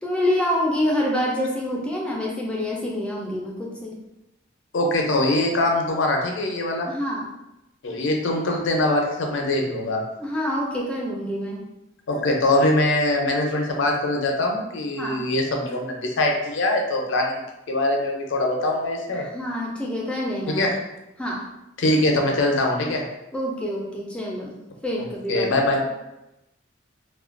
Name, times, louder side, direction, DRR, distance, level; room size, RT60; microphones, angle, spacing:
voice 1, 0.0-3.9 6.8-7.3 10.2-11.6 15.0-15.2 19.1-20.6 21.2-21.4 23.3-24.6 24.8-25.5, left 1 dB, 5° left, -3 dB, 0.3 m, -26 dB
voice 2, 4.7-6.9 7.8-10.0 12.1-17.4 17.7-19.3 20.5-20.7 21.8-23.0 25.0-25.8, left 1 dB, 80° left, 1 dB, 0.5 m, -22 dB
2.3 x 2.1 x 2.4 m, 0.92 s
head